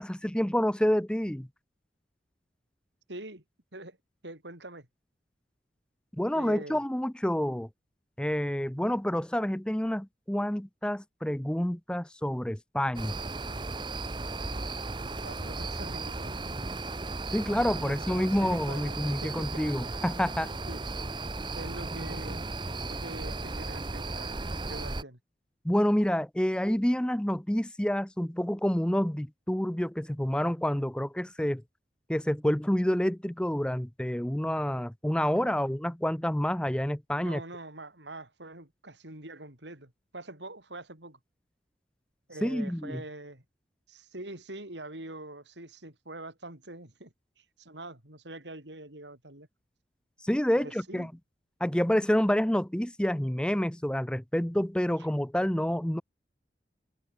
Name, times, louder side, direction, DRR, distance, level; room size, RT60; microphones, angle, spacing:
voice 1, 0.0-1.5 6.1-7.7 8.2-13.2 17.3-20.5 25.6-31.6 32.1-37.4 42.4-43.0 50.2-51.1 51.6-56.0, equal, 5° left, 0.6 m, -28 dB
voice 2, 3.1-3.4 3.7-4.0 4.2-4.9 6.3-6.8 14.5-14.7 15.0-16.4 17.7-19.6 20.7-20.8 21.5-22.4 22.9-25.2 35.3-35.6 37.1-41.2 42.3-43.4 43.9-49.5 50.6-51.1, right 2 dB, 85° right, 6.4 m, -44 dB
sound 1, 12.9-25.0, right 3 dB, 25° right, 0.9 m, -36 dB
head